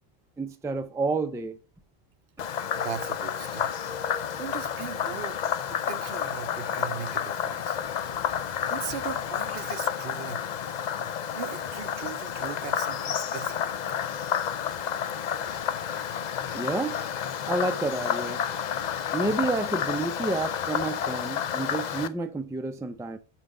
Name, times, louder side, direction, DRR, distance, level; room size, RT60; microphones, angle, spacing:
voice 1, 0.4-1.6 16.5-17.0 17.5-18.4 19.1-23.2, right 3 dB, 5° right, 0.4 m, -30 dB
Frog, 2.4-22.1, left 8 dB, 55° left, 0.5 m, -30 dB
voice 2, 2.7-3.7 4.4-5.4 5.7-7.8 8.7-10.5 11.3-13.6, right 9 dB, 70° right, 0.8 m, -39 dB
5.7 x 5.2 x 4.8 m
omnidirectional pair, 1.1 m